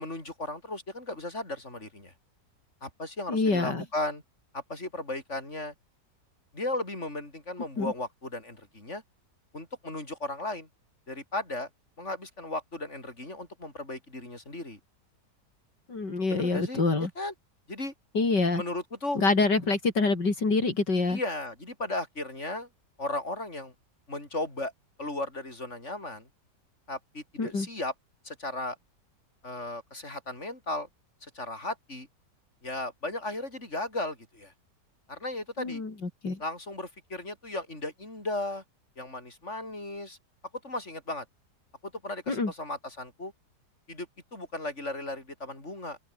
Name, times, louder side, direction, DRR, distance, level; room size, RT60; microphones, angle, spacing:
voice 1, 0.0-2.1 2.8-4.2 4.5-5.7 6.5-9.0 9.5-10.7 11.1-11.7 12.0-14.8 16.3-17.3 17.7-17.9 18.6-19.2 21.1-22.7 23.0-23.7 24.1-24.7 25.0-26.3 26.9-27.9 28.2-28.8 29.4-30.9 31.2-32.1 32.6-34.5 35.1-35.8 36.4-38.6 39.0-40.2 40.6-41.3 42.0-43.3 43.9-44.1 44.3-46.0, left 2 dB, 40° left, 7.2 m, -35 dB
voice 2, 3.3-3.8 7.8-7.9 15.9-17.1 18.1-18.6 19.1-21.2 27.4-27.7 35.6-35.9 36.2-36.4 42.3-42.5, left 3 dB, 80° left, 4.9 m, -26 dB
open air
omnidirectional pair, 1.8 m